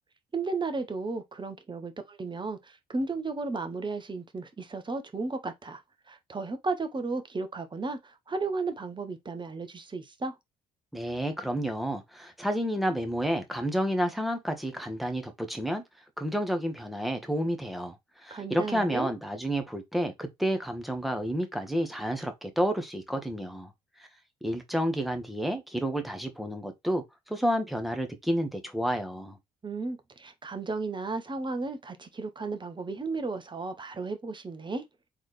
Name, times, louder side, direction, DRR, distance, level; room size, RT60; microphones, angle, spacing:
voice 1, 0.3-5.8 6.1-10.4 18.3-19.1 29.6-34.8, right 3 dB, 25° right, 1.2 m, -34 dB
voice 2, 10.9-15.8 16.2-18.0 18.2-23.7 24.4-29.4, equal, ahead, 1.5 m, -30 dB
3.9 x 3.4 x 3.3 m
hypercardioid pair, 50°, 18 cm